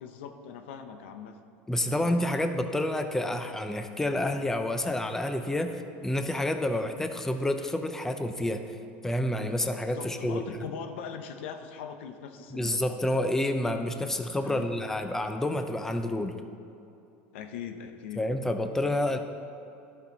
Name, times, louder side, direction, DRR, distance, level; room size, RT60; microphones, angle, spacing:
voice 1, 0.0-1.4 1.9-2.1 9.9-12.8 14.4-14.7 17.3-18.2, left 7 dB, 80° left, 7 dB, 0.7 m, -41 dB
voice 2, 1.7-8.8 9.0-10.4 12.5-16.3 18.2-19.2, left 1 dB, 5° left, 7 dB, 0.5 m, -29 dB
11.5 x 5.6 x 4.0 m, 2.7 s
supercardioid pair, 105°, 6 cm